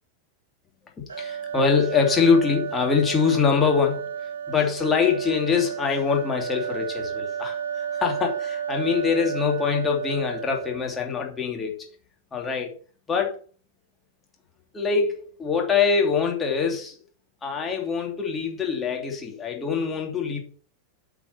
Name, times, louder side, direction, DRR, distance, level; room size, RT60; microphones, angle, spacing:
voice 1, 1.0-11.8 12.3-12.7 13.1-13.4 14.7-17.0 17.4-20.4, left 5 dB, 20° left, 2.9 m, -24 dB
sound 1, 1.1-11.0, right 8 dB, 70° right, 1.7 m, -32 dB
8.7 x 5.9 x 6.0 m
figure-of-eight pair, 90°, 0 cm